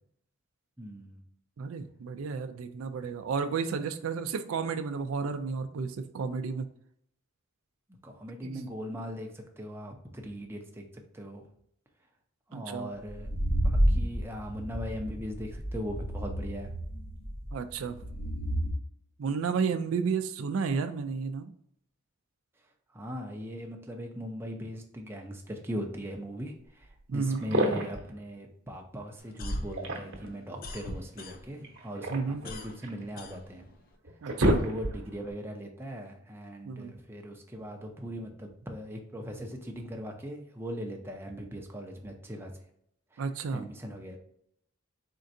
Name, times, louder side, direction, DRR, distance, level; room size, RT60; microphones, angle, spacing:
voice 1, 0.8-1.2 8.0-10.8 11.1-11.4 12.5-16.7 22.9-33.7 34.6-42.5 43.1-43.2 43.5-44.2, equal, 10° right, 2 dB, 0.6 m, -39 dB
voice 2, 1.6-6.7 8.4-8.7 12.5-12.9 17.5-18.1 19.2-21.5 27.1-27.4 32.1-32.5 34.2-34.6 36.7-36.9 43.2-43.7, right 5 dB, 75° right, 10 dB, 0.4 m, -32 dB
sound 1, 13.1-18.7, equal, 60° left, 1.5 m, -30 dB
sound 2, 26.9-27.0 27.3-28.1 29.5-30.4 31.6-33.0 33.6-33.7 34.0-35.2, equal, 55° right, 0.9 m, -29 dB
sound 3, 29.2-31.7 32.0-34.0, left 1 dB, 45° left, 0.5 m, -39 dB
4.3 x 3.7 x 2.6 m, 0.71 s
head